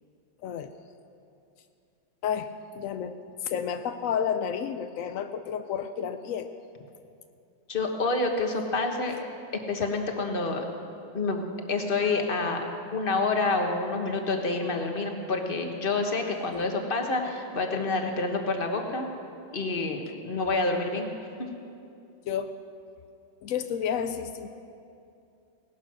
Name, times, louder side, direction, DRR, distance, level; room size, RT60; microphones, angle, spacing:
voice 1, 2.7-6.5 16.5-16.7 22.3-22.5 23.4-24.5, left 8 dB, 85° left, 9 dB, 0.7 m, -31 dB
voice 2, 7.7-9.2 9.7-10.6 11.1-11.4 11.7-12.6 12.9-19.1 19.5-21.1, left 3 dB, 30° left, 3 dB, 1.3 m, -28 dB
17.5 x 12.0 x 6.1 m, 2.6 s
omnidirectional pair, 2.1 m